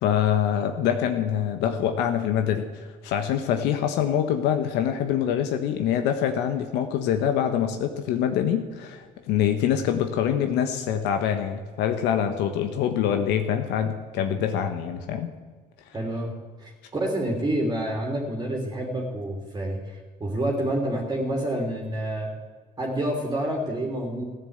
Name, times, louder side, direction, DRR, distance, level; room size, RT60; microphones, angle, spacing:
voice 1, 0.0-15.3, left 9 dB, 90° left, 6 dB, 1.2 m, -25 dB
voice 2, 15.9-16.3 16.6-22.3 22.8-24.2, right 1 dB, 25° right, -1 dB, 2.9 m, -28 dB
14.5 x 10.5 x 8.0 m, 1.5 s
cardioid pair, 110°, 17 cm